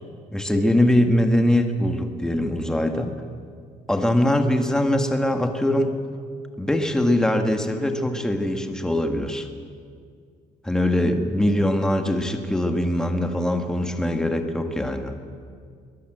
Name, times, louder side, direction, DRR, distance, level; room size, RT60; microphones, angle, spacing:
voice 1, 0.3-3.1 3.9-5.9 6.6-9.5 10.6-15.1, left 1 dB, 5° left, 5 dB, 1.7 m, -22 dB
22.0 x 21.0 x 7.9 m, 2.1 s
cardioid pair, 160°, 14 cm